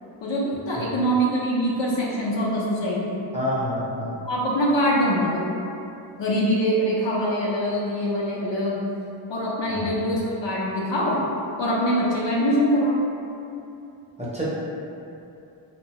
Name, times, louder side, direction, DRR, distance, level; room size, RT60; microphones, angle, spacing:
voice 1, 0.2-3.2 4.2-5.5 6.2-8.9 9.3-11.2 11.6-13.0, equal, 65° left, -5 dB, 0.6 m, -23 dB
voice 2, 3.3-4.2 9.7-9.9 14.2-14.4, equal, 15° right, -8 dB, 0.7 m, -28 dB
2.6 x 2.2 x 2.9 m, 2.7 s
cardioid pair, 60°, 48 cm